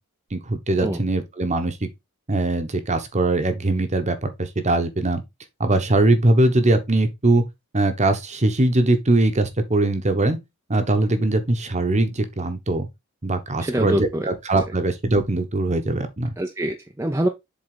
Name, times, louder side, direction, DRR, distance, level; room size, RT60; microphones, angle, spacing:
voice 1, 0.3-1.9 2.3-5.2 5.6-7.4 7.7-10.4 10.7-12.9 13.2-16.3, right 2 dB, 30° right, 1.1 m, -21 dB
voice 2, 13.6-14.3 16.4-17.3, right 1 dB, 10° right, 0.6 m, -24 dB
7.6 x 3.8 x 3.8 m
head